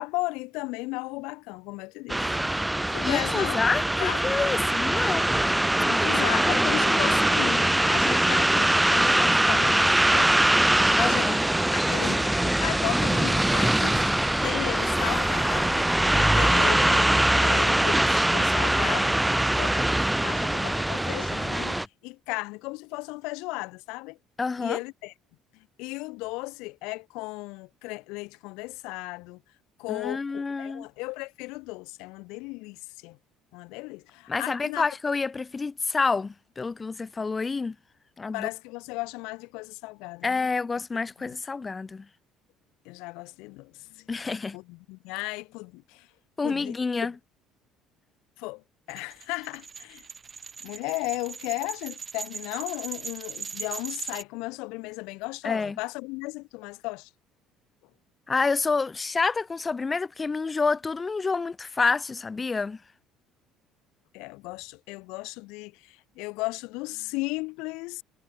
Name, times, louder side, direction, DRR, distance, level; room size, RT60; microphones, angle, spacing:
voice 1, 0.0-2.3 2.9-4.3 4.9-5.0 5.8-24.2 24.6-25.1 25.5-29.4 29.8-33.2 33.5-34.8 38.3-40.5 41.2-41.4 42.8-44.1 44.5-46.1 46.4-46.8 47.0-47.1 48.4-48.6 48.9-50.0 50.6-57.1 64.1-68.0, left 25 dB, 80° left, 3.2 m, -35 dB
sound 1, 2.1-21.9, right 1 dB, 5° right, 0.8 m, -22 dB
voice 2, 3.0-5.3 10.9-11.4 18.8-18.9 24.4-24.8 29.9-30.9 34.3-37.7 38.2-38.5 40.2-42.1 44.1-44.6 46.4-47.1 55.4-55.8 58.3-62.8, left 4 dB, 25° left, 0.8 m, -28 dB
sound 2, 48.9-54.2, right 5 dB, 35° right, 5.8 m, -39 dB
supercardioid pair, 75°, 0 cm